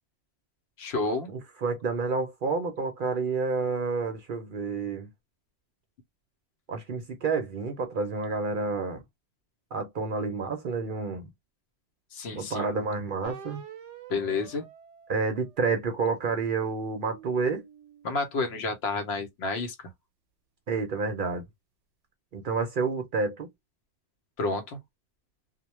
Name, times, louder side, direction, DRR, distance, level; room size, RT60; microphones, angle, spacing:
voice 1, 0.8-1.3 12.1-12.7 14.1-14.7 18.0-19.9 24.4-24.8, left 3 dB, 65° left, 0.9 m, -30 dB
voice 2, 1.3-5.1 6.7-9.0 9.7-11.3 12.3-13.6 15.1-17.6 20.7-21.4 22.3-23.5, right 4 dB, 55° right, 0.6 m, -29 dB
sound 1, 13.2-15.9 16.5-19.0, right 8 dB, 90° right, 0.9 m, -48 dB
2.2 x 2.1 x 2.9 m
omnidirectional pair, 1.2 m